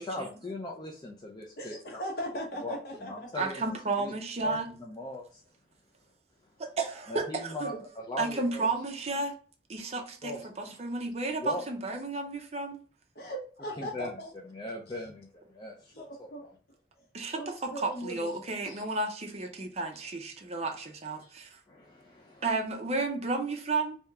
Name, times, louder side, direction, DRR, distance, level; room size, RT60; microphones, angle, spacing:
voice 1, 0.0-2.0 2.6-2.7 3.1-4.1 4.4-5.4 7.1-8.7 10.2-10.8 11.4-11.6 13.8-16.5 20.5-20.6 21.7-22.5, left 2 dB, 25° left, 0.5 m, -40 dB
voice 2, 1.6-3.4 13.1-14.3 15.9-16.4 17.3-18.4 18.6-18.8 21.2-21.3, equal, 60° left, 1.2 m, -39 dB
voice 3, 3.4-4.7 6.6-7.8 8.2-9.4 9.7-12.8 17.1-21.6 22.4-24.0, right 3 dB, 40° right, 0.6 m, -32 dB
3.4 x 2.8 x 3.4 m
head